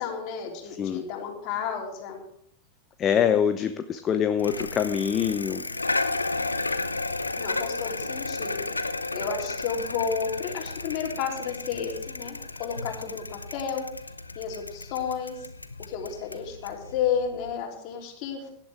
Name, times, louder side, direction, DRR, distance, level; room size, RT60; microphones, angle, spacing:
voice 1, 0.0-2.2 7.4-8.7 9.1-13.8 14.4-15.5 15.9-18.5, left 7 dB, 45° left, 0 dB, 3.7 m, -32 dB
voice 2, 3.0-5.6, left 8 dB, 25° left, 9 dB, 0.8 m, -24 dB
Bicycle, 4.4-17.5, left 3 dB, 80° left, 0.8 m, -33 dB
17.5 x 11.5 x 3.6 m, 0.67 s
figure-of-eight pair, 90°, 0 cm